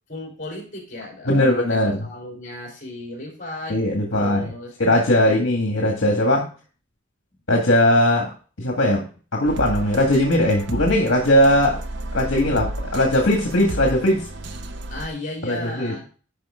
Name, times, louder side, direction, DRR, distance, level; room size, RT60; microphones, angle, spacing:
voice 1, 0.1-3.8 4.1-5.5 14.9-16.1, left 1 dB, 40° left, -1 dB, 3.9 m, -35 dB
voice 2, 1.3-2.0 3.7-4.5 4.8-6.4 7.5-8.3 8.6-9.0 9.3-11.8 12.1-14.3 15.4-15.9, left 1 dB, 65° left, 1 dB, 1.8 m, -19 dB
sound 1, 9.5-15.1, right 1 dB, 60° right, 0.8 m, -32 dB
11.0 x 5.0 x 3.6 m, 0.38 s
head